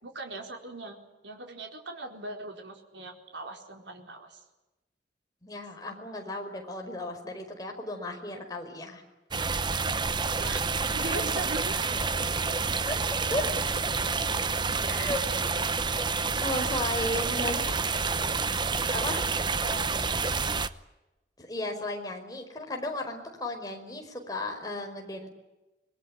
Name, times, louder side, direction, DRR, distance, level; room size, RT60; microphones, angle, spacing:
voice 1, 0.0-1.0 1.2-4.4 10.4-10.6 10.9-12.1 12.5-12.6 17.4-18.2 19.6-20.6, right 2 dB, 85° right, 3 dB, 4.4 m, -40 dB
voice 2, 5.4-9.0 11.0-11.2 12.9-13.0 13.3-13.4 14.9-15.2 16.4-17.7 18.9-19.2 21.4-25.3, left 2 dB, 20° left, 3 dB, 5.1 m, -34 dB
sound 1, 9.3-20.7, right 4 dB, 25° right, 0.9 m, -28 dB
25.5 x 21.5 x 9.8 m, 1.0 s
head